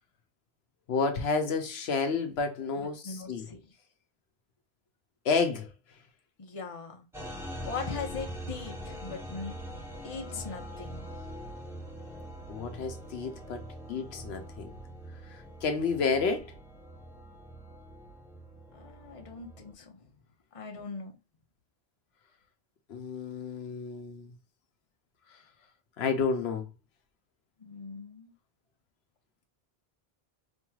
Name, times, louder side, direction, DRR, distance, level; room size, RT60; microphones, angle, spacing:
voice 1, 0.9-3.5 5.2-5.7 12.5-13.6 13.9-14.7 15.2-16.5 22.9-24.3 26.0-26.7, left 5 dB, 75° left, 0.9 m, -30 dB
voice 2, 2.8-3.6 6.4-7.0 7.6-9.5 10.0-11.0 18.7-20.0 20.5-21.2 27.6-28.3, left 4 dB, 35° left, 0.8 m, -40 dB
sound 1, 7.1-19.7, equal, 5° right, 0.8 m, -43 dB
4.4 x 3.0 x 2.3 m
omnidirectional pair, 1.1 m